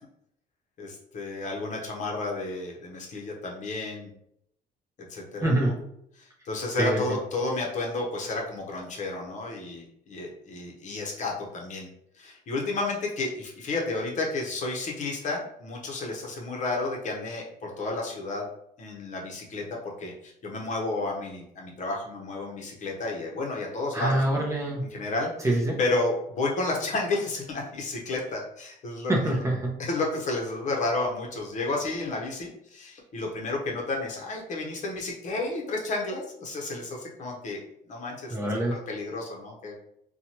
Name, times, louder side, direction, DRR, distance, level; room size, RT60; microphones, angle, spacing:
voice 1, 0.8-4.1 5.0-5.7 6.2-11.9 12.1-18.4 18.8-19.6 20.0-24.4 24.9-25.5 25.8-29.4 29.8-37.6 37.9-38.4 38.7-39.7, left 2 dB, 45° left, -1 dB, 0.7 m, -31 dB
voice 2, 5.4-5.7 6.8-7.0 23.9-24.9 25.4-25.8 29.1-29.8 38.3-38.7, right 1 dB, 15° right, -1 dB, 0.6 m, -25 dB
2.7 x 2.2 x 2.9 m, 0.74 s
cardioid pair, 110°, 17 cm